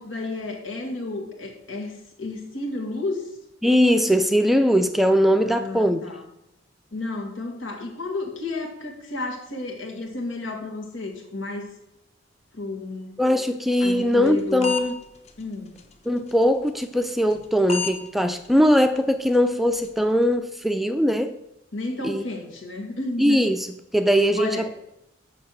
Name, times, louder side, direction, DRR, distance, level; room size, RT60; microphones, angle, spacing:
voice 1, 0.0-3.4 5.4-6.3 6.9-11.7 12.5-13.2 13.8-14.7 15.4-15.8 21.7-23.4 24.4-24.7, left 2 dB, 90° left, 1 dB, 2.2 m, -32 dB
voice 2, 3.6-6.0 13.2-15.0 16.1-21.4 22.0-22.2 23.2-23.6 23.9-24.7, equal, ahead, 8 dB, 0.4 m, -20 dB
sound 1, 13.9-14.9 15.3-15.4 15.8-15.9 16.3-16.4 16.8-16.9 17.3-17.4 17.7-18.0 18.3-18.5 18.8-19.0 19.3-19.5 19.8-20.0, left 4 dB, 35° left, 0.9 m, -29 dB
6.9 x 6.6 x 6.5 m, 0.85 s
head